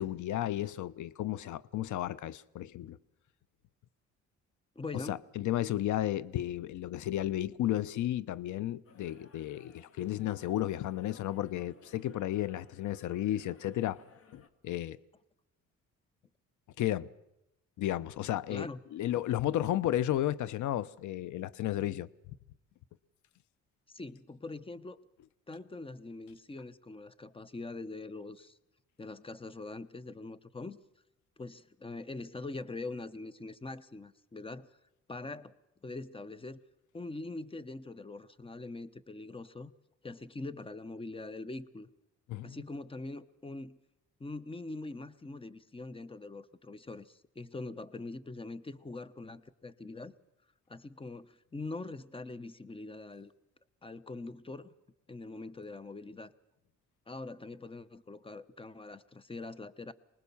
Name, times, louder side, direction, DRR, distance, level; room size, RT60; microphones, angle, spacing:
voice 1, 0.0-3.0 5.1-14.0 14.3-15.0 16.8-17.1 17.8-22.1 42.3-42.6, left 13 dB, 75° left, 0.8 m, -33 dB
voice 2, 4.7-5.2 18.5-18.8 23.9-25.0 25.5-28.6 29.0-30.8 31.4-34.7 35.1-35.5 35.8-36.6 36.9-39.7 40.0-41.9 42.4-43.8 44.2-50.1 50.7-53.3 53.8-54.7 55.1-56.3 57.1-59.9, left 3 dB, 20° left, 1.0 m, -43 dB
sound 1, 8.8-14.5, left 5 dB, 50° left, 2.0 m, -61 dB
24.5 x 20.0 x 7.1 m
cardioid pair, 90°, 30 cm